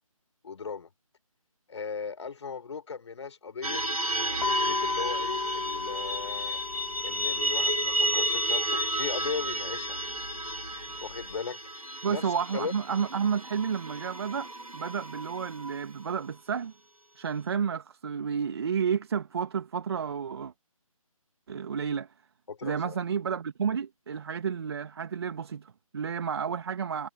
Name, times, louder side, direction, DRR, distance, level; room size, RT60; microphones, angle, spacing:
voice 1, 0.4-0.9 1.7-3.8 4.1-6.6 7.0-10.0 11.0-11.6 12.1-12.7 22.5-23.0, left 5 dB, 50° left, 4.4 m, -38 dB
sound 1, 3.6-16.2, right 1 dB, 80° right, 7.2 m, -32 dB
sound 2, 4.4-11.4, left 4 dB, 70° left, 3.0 m, -36 dB
voice 2, 12.0-16.7 17.2-20.5 21.5-22.1 22.6-27.1, right 7 dB, 45° right, 2.6 m, -31 dB
figure-of-eight pair, 155°, 18 cm